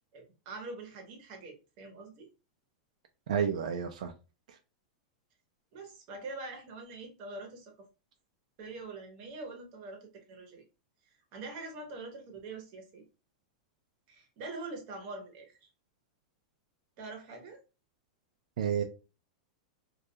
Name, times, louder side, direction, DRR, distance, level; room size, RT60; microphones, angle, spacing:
voice 1, 0.1-2.3 5.7-7.9 8.6-10.6 11.3-13.0 14.1-15.7 17.0-17.6, right 3 dB, 35° right, 0.8 m, -44 dB
voice 2, 3.3-4.1 4.5-4.6 18.6-18.8, right 8 dB, 75° right, 0.4 m, -30 dB
2.3 x 2.2 x 2.7 m
supercardioid pair, 170°, 4 cm